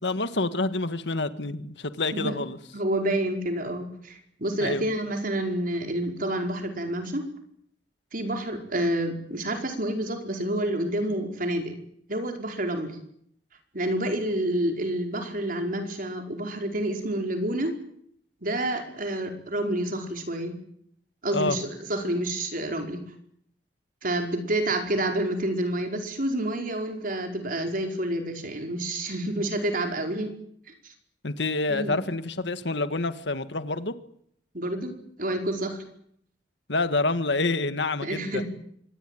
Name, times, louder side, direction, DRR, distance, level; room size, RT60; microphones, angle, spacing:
voice 1, 0.0-2.6 4.6-4.8 21.3-21.6 31.2-33.9 36.7-38.4, left 3 dB, 70° left, 11 dB, 1.7 m, -27 dB
voice 2, 2.7-7.2 8.1-11.7 12.1-12.9 13.7-17.7 18.4-20.5 21.2-23.0 24.0-30.3 30.8-30.9 31.7-32.0 34.5-35.8 38.0-38.4, right 1 dB, 50° right, 4 dB, 4.9 m, -28 dB
25.0 x 20.0 x 9.2 m, 0.69 s
head